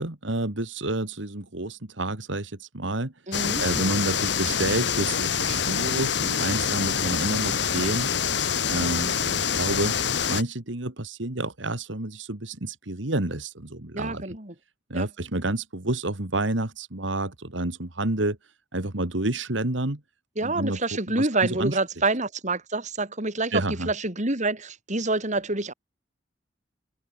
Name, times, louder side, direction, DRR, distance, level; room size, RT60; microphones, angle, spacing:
voice 1, 0.0-3.1 3.6-8.1 8.7-10.0 10.3-14.4 14.9-18.4 18.7-20.0 20.4-20.8 21.1-21.8 23.5-23.9, right 2 dB, 80° right, 2.4 m, -29 dB
sound 1, 3.3-10.4, left 7 dB, 65° left, 1.5 m, -26 dB
voice 2, 3.3-3.6 13.9-14.5 14.9-15.1 20.4-25.7, right 2 dB, 40° right, 4.6 m, -27 dB
open air
head